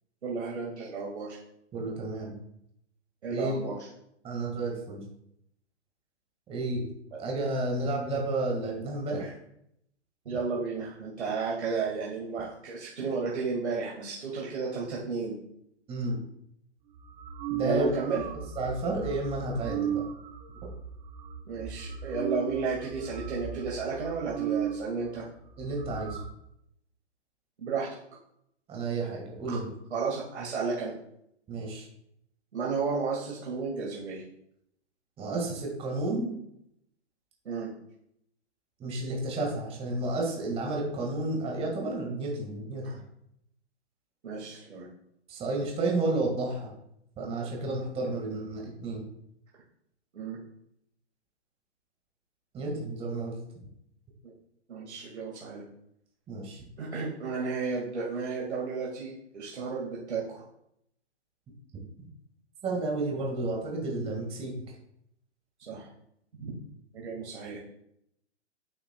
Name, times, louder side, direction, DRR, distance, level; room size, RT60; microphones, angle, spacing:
voice 1, 0.2-1.4 3.2-3.9 10.3-15.4 17.6-18.2 21.5-25.3 27.6-27.9 29.5-29.6 29.9-30.9 32.5-34.2 37.4-37.7 42.8-43.0 44.2-44.9 50.1-50.4 54.2-54.3 54.7-55.6 56.8-60.4 65.6-65.9 66.4-66.5 66.9-67.6, right 4 dB, 70° right, -4 dB, 1.9 m, -33 dB
voice 2, 1.7-2.4 3.3-3.6 4.2-5.0 6.5-6.9 7.2-9.4 15.9-16.2 17.5-18.0 18.5-20.0 25.6-26.2 28.7-29.7 31.5-31.8 35.2-36.3 38.8-43.0 45.3-46.7 47.2-49.0 52.5-53.3 56.3-56.6 62.6-64.5, right 2 dB, 15° right, -1 dB, 1.7 m, -31 dB
sound 1, 17.0-24.8 25.2-25.3 25.5-26.2, right 8 dB, 45° right, 1.1 m, -36 dB
9.4 x 5.8 x 2.2 m, 0.76 s
hypercardioid pair, 130°, 35 cm